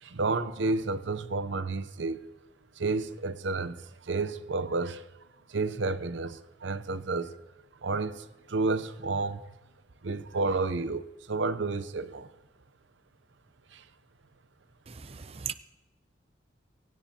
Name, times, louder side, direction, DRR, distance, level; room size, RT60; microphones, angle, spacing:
voice 1, 0.0-2.2 2.8-3.8 4.0-5.0 5.5-7.3 7.8-9.5 10.0-12.3 13.7-13.8, right 3 dB, 80° right, 0.7 m, -31 dB
voice 2, 14.9-15.5, right 8 dB, 30° right, 0.5 m, -38 dB
23.5 x 16.5 x 2.9 m
head